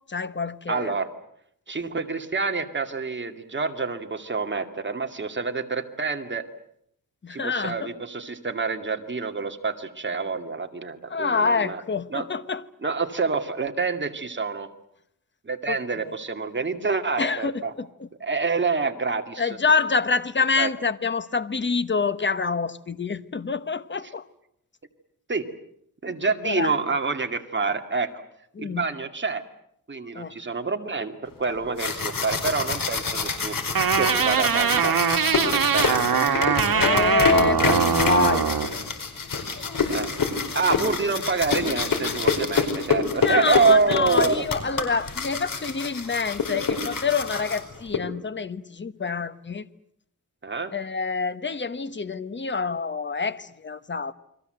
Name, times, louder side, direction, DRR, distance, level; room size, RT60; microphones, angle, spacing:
voice 1, 0.1-0.9 7.2-7.9 11.1-12.6 15.7-16.1 17.2-18.1 19.4-24.3 26.1-26.2 26.4-26.8 28.5-28.8 30.1-30.3 36.7-38.5 40.7-40.8 43.1-49.7 50.7-54.1, left 5 dB, 30° left, 1.2 m, -26 dB
voice 2, 0.7-1.1 1.7-6.5 7.3-11.8 12.1-12.3 12.8-14.7 15.4-17.7 18.2-19.5 20.6-20.7 25.3-25.5 26.0-28.1 28.6-29.4 29.9-33.5 33.9-35.0 35.4-36.5 39.9-40.1 40.5-44.4 50.4-50.7, right 4 dB, 30° right, 2.3 m, -27 dB
sound 1, 31.5-48.0, left 5 dB, 70° left, 4.7 m, -27 dB
sound 2, 33.8-38.7, right 7 dB, 75° right, 2.0 m, -22 dB
29.5 x 22.5 x 7.9 m
wide cardioid pair, 140°, 35 cm